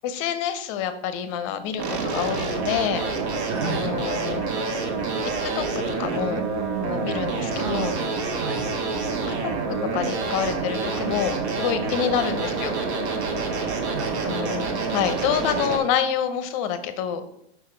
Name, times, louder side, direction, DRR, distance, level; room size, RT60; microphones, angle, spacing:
voice 1, 0.0-3.1 3.6-4.5 5.4-5.6 6.0-6.4 6.8-7.9 9.3-9.5 9.9-12.7 14.2-17.2, left 8 dB, 30° left, 11 dB, 0.5 m, -27 dB
sound 1, 1.8-15.8, right 4 dB, 80° right, 1.6 m, -27 dB
voice 2, 3.5-3.9 7.5-8.7 13.9-14.5, right 5 dB, 25° right, 8 dB, 0.4 m, -33 dB
5.8 x 5.6 x 4.3 m, 0.80 s
supercardioid pair, 150°, 33 cm